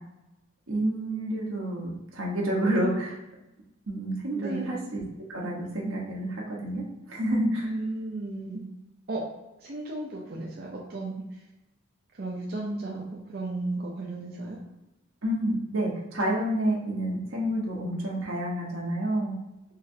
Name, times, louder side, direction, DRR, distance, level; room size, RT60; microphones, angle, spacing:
voice 1, 0.7-3.2 3.9-5.0 5.3-7.7 15.2-19.4, right 1 dB, 85° right, -2 dB, 1.1 m, -29 dB
voice 2, 4.3-4.8 7.6-8.6 9.1-9.2 9.6-11.2 12.2-14.6, right 2 dB, 50° right, -3 dB, 0.6 m, -34 dB
4.0 x 3.0 x 2.7 m, 0.96 s
head